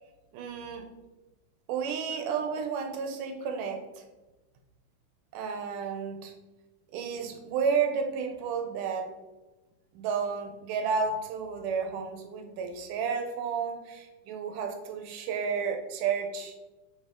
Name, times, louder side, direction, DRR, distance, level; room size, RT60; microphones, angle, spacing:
voice 1, 0.3-0.8 1.7-3.8 5.3-6.3 6.9-9.1 9.9-16.6, right 6 dB, 85° right, 5 dB, 2.3 m, -31 dB
7.8 x 3.5 x 3.6 m, 1.1 s
omnidirectional pair, 3.6 m